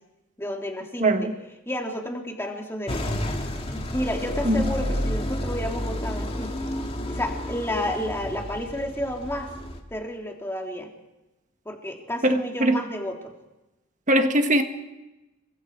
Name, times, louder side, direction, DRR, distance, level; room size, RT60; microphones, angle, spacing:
voice 1, 0.4-1.3 1.6-3.2 3.7-6.5 7.1-9.5 9.9-10.9 11.6-13.3, left 1 dB, 10° left, 3.2 m, -31 dB
voice 2, 1.0-1.3 4.5-4.6 12.2-12.4 12.6-12.7 14.1-14.6, right 1 dB, 35° right, 1.8 m, -20 dB
sound 1, 2.9-9.8, left 1 dB, 30° left, 2.3 m, -30 dB
28.5 x 24.5 x 4.8 m
head